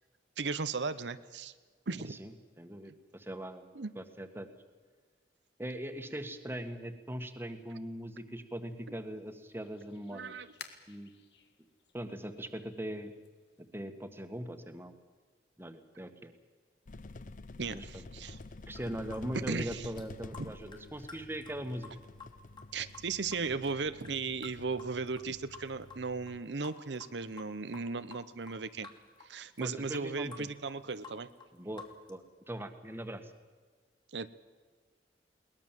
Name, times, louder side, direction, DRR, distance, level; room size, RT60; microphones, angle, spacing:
voice 1, 0.4-1.5 1.9-2.2 3.7-3.9 10.1-10.5 17.6-18.4 19.3-19.9 22.7-28.9 29.2-31.3 34.1-34.3, right 4 dB, 80° right, 12 dB, 0.9 m, -36 dB
voice 2, 2.6-4.5 5.6-10.4 10.9-11.1 11.9-13.1 13.7-14.9 15.6-16.3 17.7-18.0 18.7-21.9 29.6-30.5 31.5-31.8 32.1-32.2 32.5-33.3, right 1 dB, 15° right, 8 dB, 1.6 m, -40 dB
sound 1, 8.7-13.9, left 7 dB, 70° left, 1.9 m, -56 dB
sound 2, 16.9-26.4, left 2 dB, 45° left, 0.7 m, -49 dB
sound 3, 18.4-18.5 18.7-19.2 19.5-19.6 20.0-20.1 20.3-24.1 24.4-25.3 25.5-26.0 26.3-26.4 26.6-28.6 28.8-29.3 29.6-29.7 29.9-32.1, left 4 dB, 25° left, 2.7 m, -50 dB
22.0 x 19.5 x 7.6 m, 1.5 s
head